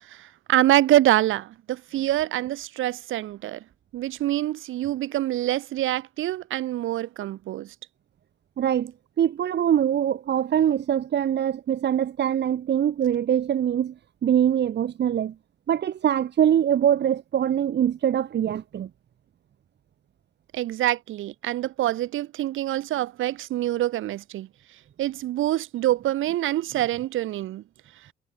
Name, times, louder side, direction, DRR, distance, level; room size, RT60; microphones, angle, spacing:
voice 1, 0.1-3.6 3.9-7.7 20.5-24.5 25.0-27.6, right 14 dB, 85° right, 3.0 m, -25 dB
voice 2, 8.6-8.9 9.2-13.9 14.2-15.3 15.7-18.9, right 10 dB, 60° right, 1.9 m, -23 dB
cardioid pair, 90°, 20 cm